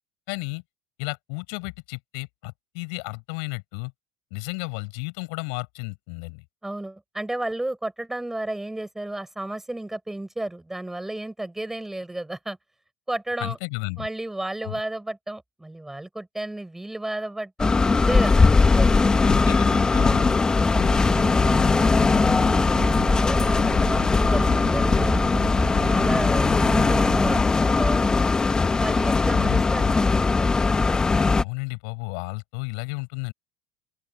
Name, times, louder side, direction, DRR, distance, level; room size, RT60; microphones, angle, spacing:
voice 1, 0.3-0.6 1.0-3.9 4.3-6.4 13.4-14.1 14.6-14.7 19.3-20.4 29.3-29.9 31.4-33.3, left 39 dB, 65° left, 5.8 m, -33 dB
voice 2, 6.6-12.6 13.1-13.6 14.0-19.2 19.9-21.9 22.3-25.2 25.8-28.5 28.8-30.5, right 1 dB, 10° right, 6.3 m, -33 dB
sound 1, 17.6-31.4, left 4 dB, 20° left, 2.2 m, -20 dB
sound 2, 20.7-27.4, right 16 dB, 55° right, 7.2 m, -36 dB
open air
figure-of-eight pair, 70°, 4 cm